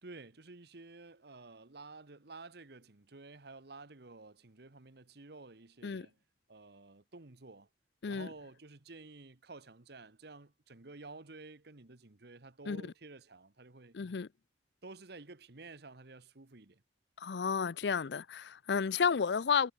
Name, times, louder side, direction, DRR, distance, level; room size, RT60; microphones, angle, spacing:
voice 1, 0.0-6.2 6.5-7.7 8.1-14.0 14.8-16.8, right 3 dB, 65° right, 1.3 m, -52 dB
voice 2, 13.9-14.3 17.2-19.7, left 6 dB, 70° left, 0.5 m, -32 dB
head